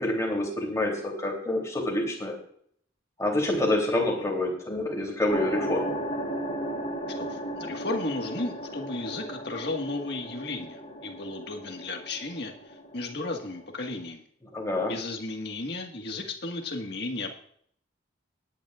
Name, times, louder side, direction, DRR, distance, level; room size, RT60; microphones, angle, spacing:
voice 1, 0.0-2.4 3.2-6.0 14.5-14.9, left 1 dB, 15° left, 0 dB, 3.1 m, -27 dB
sound 1, 5.3-14.0, right 1 dB, 35° left, 2.5 m, -36 dB
voice 2, 7.2-12.5 12.9-14.2 14.9-17.4, left 2 dB, 55° left, 3 dB, 1.7 m, -34 dB
19.0 x 10.5 x 2.5 m, 0.63 s
head